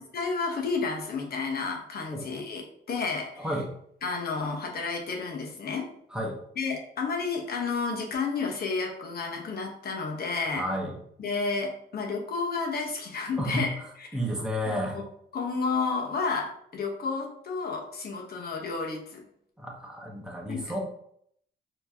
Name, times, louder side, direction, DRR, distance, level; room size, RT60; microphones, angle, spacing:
voice 1, 0.1-3.6 4.0-5.9 6.6-10.7 11.2-14.2 14.7-15.0 15.3-19.2 20.5-20.7, left 4 dB, 50° left, 1 dB, 1.0 m, -31 dB
voice 2, 10.5-10.9 13.4-13.6 14.1-15.0 19.6-20.8, equal, 5° right, -1 dB, 1.1 m, -31 dB
4.4 x 3.0 x 2.8 m, 0.69 s
cardioid pair, 90°, 20 cm